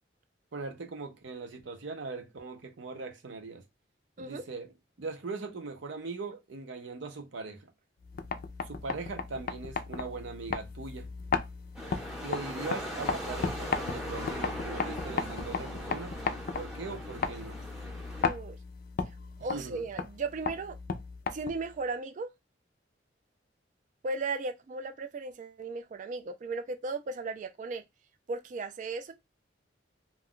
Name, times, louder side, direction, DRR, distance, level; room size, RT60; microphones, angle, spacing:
voice 1, 0.5-3.6 4.2-4.7 5.0-7.7 8.6-11.1 12.2-16.2 16.6-17.6 19.5-19.8, right 3 dB, 85° right, 0.6 m, -40 dB
sound 1, 8.0-21.8, left 5 dB, 50° left, 0.4 m, -36 dB
sound 2, 11.7-18.2, equal, 5° right, 0.7 m, -40 dB
voice 2, 18.2-18.6 19.4-20.8 21.3-22.3 24.0-27.8 28.3-29.1, right 3 dB, 45° right, 0.3 m, -36 dB
2.4 x 2.2 x 3.6 m
head